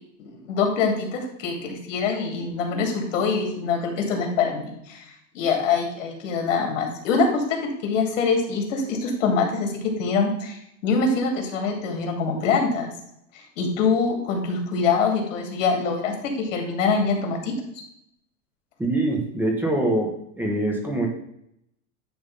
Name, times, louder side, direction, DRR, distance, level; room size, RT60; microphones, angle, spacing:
voice 1, 0.2-12.9 13.6-17.5, left 4 dB, 80° left, 3 dB, 2.6 m, -24 dB
voice 2, 18.8-21.1, right 1 dB, 5° right, 0 dB, 1.1 m, -24 dB
10.0 x 3.5 x 5.4 m, 0.75 s
supercardioid pair, 160°, 38 cm